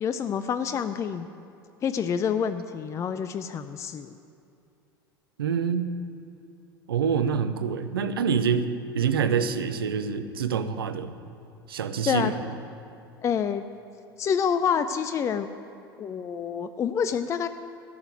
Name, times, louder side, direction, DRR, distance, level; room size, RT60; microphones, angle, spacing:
voice 1, 0.0-1.3 1.8-4.2 12.1-12.3 13.2-13.6 14.2-15.5 16.0-17.5, left 7 dB, 25° left, 11 dB, 0.4 m, -27 dB
voice 2, 5.4-5.9 6.9-11.1 11.7-12.4, right 6 dB, 70° right, 10 dB, 0.8 m, -26 dB
13.5 x 6.9 x 9.2 m, 2.7 s
figure-of-eight pair, 80°, 13 cm